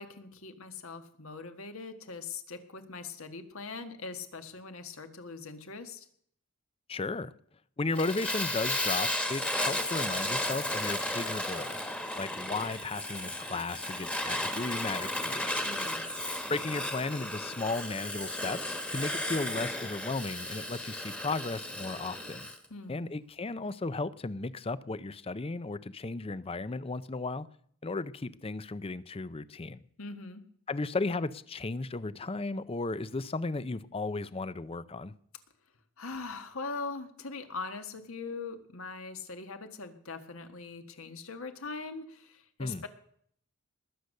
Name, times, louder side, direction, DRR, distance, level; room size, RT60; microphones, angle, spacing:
voice 1, 0.0-6.1 15.7-16.0 22.7-23.0 30.0-30.4 36.0-42.9, left 4 dB, 70° left, 1.6 m, -41 dB
voice 2, 6.9-7.3 7.8-15.5 16.5-22.5 22.9-27.5 27.8-29.8 30.7-35.1 42.6-42.8, left 3 dB, 25° left, 0.5 m, -35 dB
Fire, 7.9-22.6, left 1 dB, 5° left, 1.4 m, -34 dB
20.0 x 8.1 x 6.6 m
head